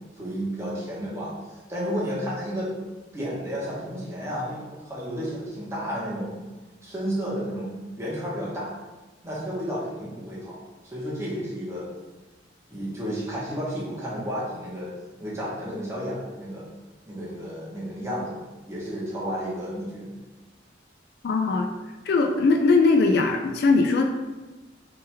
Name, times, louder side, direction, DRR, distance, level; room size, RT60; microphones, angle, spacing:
voice 1, 0.2-1.3 1.7-2.7 3.1-6.3 6.8-7.7 8.0-8.7 9.2-10.6 10.8-11.9 12.7-14.9 15.2-16.7 17.1-18.4 18.7-20.1, equal, 15° right, -7 dB, 1.0 m, -32 dB
voice 2, 21.2-21.7 22.0-24.0, left 3 dB, 55° left, 3 dB, 0.3 m, -20 dB
3.4 x 3.0 x 3.3 m, 1.2 s
head